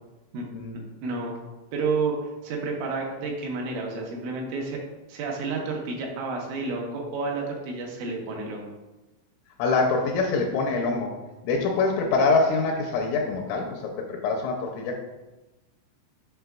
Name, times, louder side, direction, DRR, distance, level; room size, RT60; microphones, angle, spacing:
voice 1, 1.0-1.3 1.7-4.8 5.1-8.7, right 4 dB, 75° right, 0 dB, 3.2 m, -30 dB
voice 2, 9.6-11.1 11.4-15.0, left 3 dB, 85° left, 1 dB, 3.0 m, -25 dB
7.8 x 6.0 x 2.3 m, 1.1 s
omnidirectional pair, 5.9 m